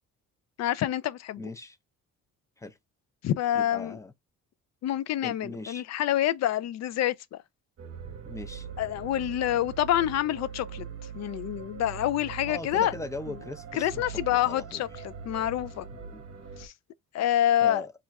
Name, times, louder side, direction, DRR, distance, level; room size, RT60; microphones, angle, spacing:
voice 1, 0.6-1.5 3.2-4.0 4.8-7.4 8.8-10.8 11.1-12.9 13.7-15.9 16.6-16.7 17.1-17.9, left 12 dB, 60° left, 0.4 m, -27 dB
voice 2, 1.4-1.8 2.6-2.8 3.5-4.1 5.2-5.8 8.2-8.7 12.4-14.0 14.3-14.8 15.9-16.2 17.6-17.9, left 2 dB, 10° left, 0.5 m, -39 dB
sound 1, 7.8-16.7, right 7 dB, 50° right, 0.8 m, -42 dB
2.5 x 2.2 x 4.0 m
cardioid pair, 90°, 30 cm